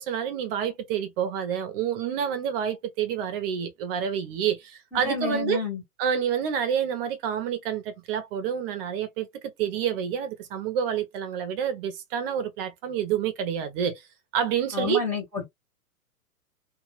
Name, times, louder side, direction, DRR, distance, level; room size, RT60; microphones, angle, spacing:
voice 1, 0.0-5.6 6.0-9.3 9.6-14.0 14.3-15.0, right 8 dB, 40° right, 1.0 m, -28 dB
voice 2, 4.9-5.8 14.7-15.5, left 4 dB, 5° left, 1.2 m, -30 dB
2.6 x 2.5 x 3.2 m
hypercardioid pair, 130°, 45 cm